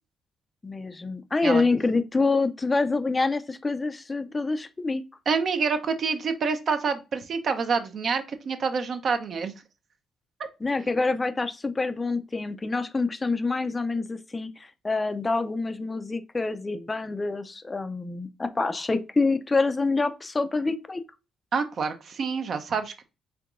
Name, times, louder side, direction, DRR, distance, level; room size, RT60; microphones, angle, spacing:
voice 1, 0.6-5.0 10.6-21.0, left 3 dB, 25° left, 0.4 m, -26 dB
voice 2, 5.3-9.5 21.5-23.0, right 5 dB, 55° right, 0.7 m, -27 dB
4.6 x 3.5 x 2.5 m
cardioid pair, 90°, 0 cm